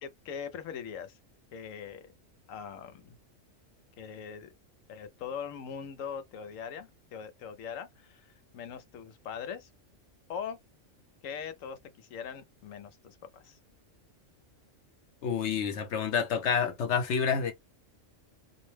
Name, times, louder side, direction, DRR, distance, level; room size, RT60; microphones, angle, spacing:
voice 1, 0.0-1.2 1.5-2.1 2.5-3.2 4.0-4.5 4.9-9.7 10.3-10.6 11.2-13.6, left 7 dB, 85° left, 1.0 m, -41 dB
voice 2, 15.2-17.5, left 6 dB, 65° left, 1.0 m, -28 dB
2.5 x 2.1 x 3.1 m
omnidirectional pair, 1.3 m